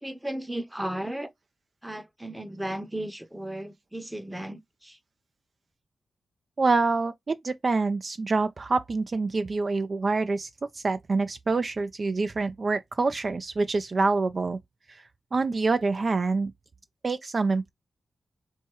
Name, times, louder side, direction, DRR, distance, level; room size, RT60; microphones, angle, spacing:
voice 1, 0.0-1.3 1.8-5.0, right 1 dB, 10° right, 0.7 m, -35 dB
voice 2, 6.6-14.6 14.9-15.0 15.3-16.5 17.0-17.7, right 3 dB, 50° right, 0.3 m, -26 dB
4.5 x 2.2 x 4.6 m
cardioid pair, 65°, 0 cm